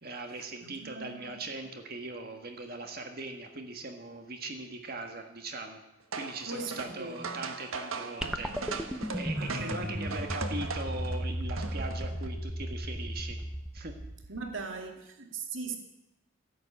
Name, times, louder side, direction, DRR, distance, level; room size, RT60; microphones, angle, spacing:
voice 1, 0.0-5.8 6.1-13.4 13.7-14.0, right 2 dB, 45° right, 1.7 m, -40 dB
voice 2, 0.6-1.4 6.5-7.4 9.3-10.1 14.3-15.8, right 4 dB, 70° right, 2.5 m, -40 dB
sound 1, 6.1-12.3, right 4 dB, 85° right, 1.5 m, -39 dB
sound 2, 8.2-14.7, equal, 5° right, 1.0 m, -36 dB
14.0 x 11.0 x 8.5 m
head